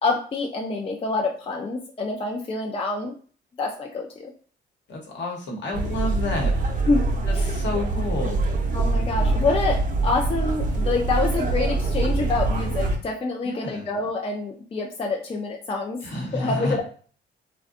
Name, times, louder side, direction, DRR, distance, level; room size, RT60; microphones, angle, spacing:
voice 1, 0.0-3.1 3.6-4.3 6.9-7.0 7.3-7.5 8.7-16.0 16.3-16.8, left 3 dB, 30° left, 0 dB, 0.4 m, -26 dB
voice 2, 4.9-6.5 7.3-8.4 13.4-13.9 16.0-16.8, left 2 dB, 65° left, -1 dB, 1.0 m, -29 dB
sound 1, 5.7-13.0, right 2 dB, 40° right, 0.6 m, -24 dB
2.5 x 2.2 x 2.4 m, 0.42 s
cardioid pair, 90°, 20 cm